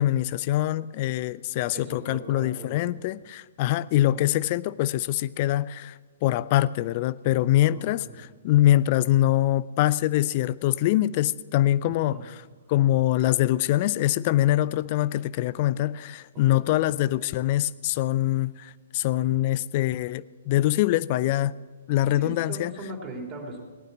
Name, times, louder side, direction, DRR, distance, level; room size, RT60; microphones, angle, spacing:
voice 1, 0.0-12.4 12.7-21.5 21.9-22.7, left 14 dB, 45° left, 19 dB, 0.5 m, -24 dB
voice 2, 1.7-2.8 4.1-4.2 7.6-8.2 11.9-12.2 16.5-16.6 22.1-23.7, right 2 dB, 25° right, -1 dB, 3.9 m, -39 dB
18.5 x 9.2 x 7.1 m, 1.4 s
figure-of-eight pair, 120°, 0 cm